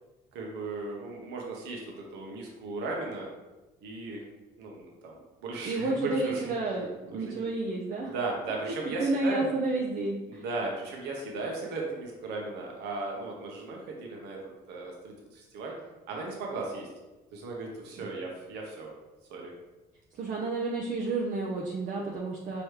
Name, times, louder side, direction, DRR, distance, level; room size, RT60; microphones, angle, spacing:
voice 1, 0.3-3.3 3.8-4.2 4.6-6.5 7.1-7.4 8.0-9.5 10.3-14.4 14.7-15.7 16.1-16.9 17.3-18.9 19.3-19.5, right 3 dB, 80° right, -1 dB, 0.9 m, -36 dB
voice 2, 5.6-8.1 8.7-10.4 18.0-18.1 20.1-22.6, right 3 dB, 50° right, -2 dB, 0.6 m, -31 dB
4.9 x 3.0 x 3.1 m, 1.1 s
cardioid pair, 110°, 17 cm